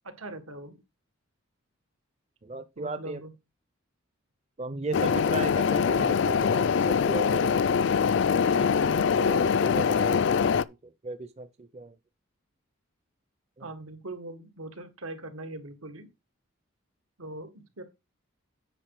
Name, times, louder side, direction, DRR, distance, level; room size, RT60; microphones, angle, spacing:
voice 1, 0.0-0.8 2.8-3.3 9.2-9.5 13.6-16.1 17.2-17.8, right 2 dB, 85° right, 1.9 m, -41 dB
voice 2, 2.4-3.2 4.6-7.7 8.3-10.6 11.0-11.9 13.6-13.7, right 3 dB, 30° right, 0.6 m, -36 dB
sound 1, 4.9-10.6, left 6 dB, 60° left, 0.4 m, -23 dB
9.2 x 5.2 x 4.9 m
head